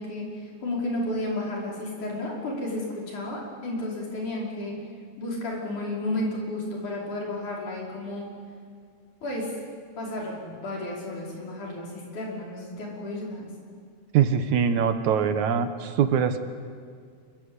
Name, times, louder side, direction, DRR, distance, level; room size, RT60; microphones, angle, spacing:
voice 1, 0.0-4.8 5.2-8.3 9.2-9.5 10.0-13.5, left 1 dB, 75° left, -3 dB, 7.0 m, -32 dB
voice 2, 14.1-16.4, right 7 dB, 75° right, 9 dB, 2.5 m, -23 dB
27.0 x 23.5 x 8.3 m, 2.1 s
omnidirectional pair, 3.5 m